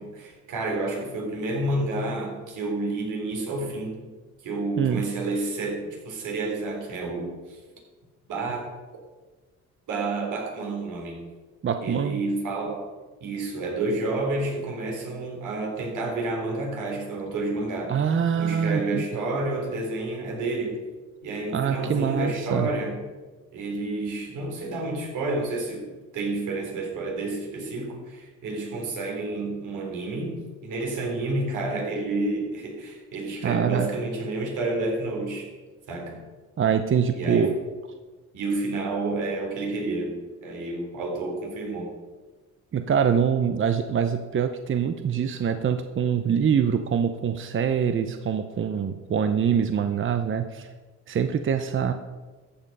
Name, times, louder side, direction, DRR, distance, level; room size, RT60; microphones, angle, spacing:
voice 1, 0.0-4.0 4.4-7.6 8.3-9.0 9.9-11.2 11.8-12.9 13.2-18.0 18.4-20.8 21.2-23.0 23.5-25.9 26.1-35.5 35.9-36.3 37.2-37.6 38.3-42.0, right 2 dB, 80° right, 1 dB, 3.7 m, -30 dB
voice 2, 11.6-12.2 17.9-19.0 21.5-22.7 33.4-33.9 36.6-37.5 42.7-50.7 51.1-51.9, right 7 dB, 40° right, 8 dB, 0.8 m, -24 dB
14.0 x 7.7 x 5.5 m, 1.3 s
cardioid pair, 90°, 30 cm